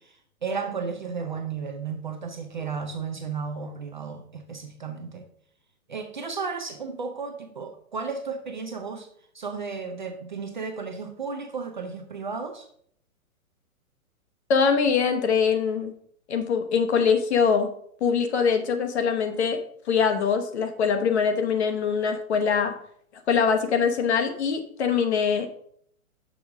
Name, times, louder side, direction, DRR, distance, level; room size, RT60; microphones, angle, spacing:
voice 1, 0.0-5.3 5.9-9.1 9.3-12.7, right 5 dB, 35° right, 5 dB, 0.5 m, -34 dB
voice 2, 14.5-15.9 16.3-17.7 18.0-19.6 19.9-22.8 23.3-25.5, left 6 dB, 50° left, 7 dB, 1.0 m, -23 dB
6.3 x 4.9 x 4.7 m, 0.65 s
hypercardioid pair, 170°, 44 cm